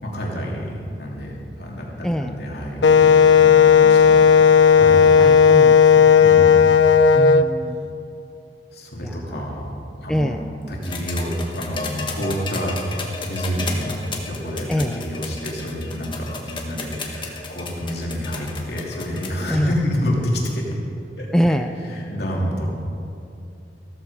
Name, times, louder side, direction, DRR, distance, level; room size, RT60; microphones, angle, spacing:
voice 1, 0.0-4.4 4.7-5.1 6.2-6.7 8.7-9.7 10.0-10.4 10.7-12.8 13.2-20.7 21.2-22.6, equal, 60° left, -2 dB, 2.8 m, -28 dB
Wind instrument woodwind instrument, 2.8-7.4, left 7 dB, 85° left, 0.5 m, -12 dB
voice 2, 5.2-6.2 7.1-7.9 9.0-9.4 10.1-10.4 14.7-15.0 19.5-19.7 21.3-21.7, equal, 5° left, 6 dB, 0.4 m, -24 dB
sound 1, 10.8-19.5 20.7-20.8, left 4 dB, 25° left, 1.6 m, -33 dB
15.0 x 13.5 x 4.9 m, 2.6 s
head